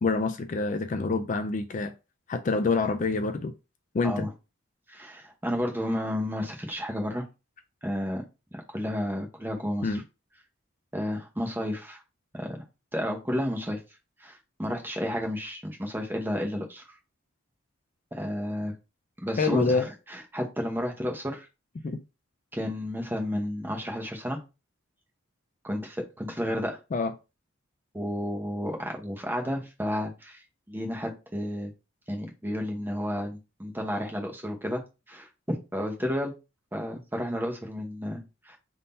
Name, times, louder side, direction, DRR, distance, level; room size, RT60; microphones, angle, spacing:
voice 1, 0.0-1.9 2.3-3.5 3.9-4.3 9.8-10.0 19.4-19.9 21.8-22.0 26.9-27.1, left 4 dB, 40° left, 0.3 m, -26 dB
voice 2, 4.9-7.2 7.8-8.2 8.5-10.0 10.9-12.0 12.3-12.6 12.9-13.8 14.2-16.8 18.1-18.7 19.2-21.5 22.5-24.4 25.6-26.8 27.9-30.4 30.7-31.7 32.1-34.8 35.1-36.3 36.7-38.6, equal, 10° right, 0.8 m, -32 dB
3.7 x 2.7 x 4.0 m
head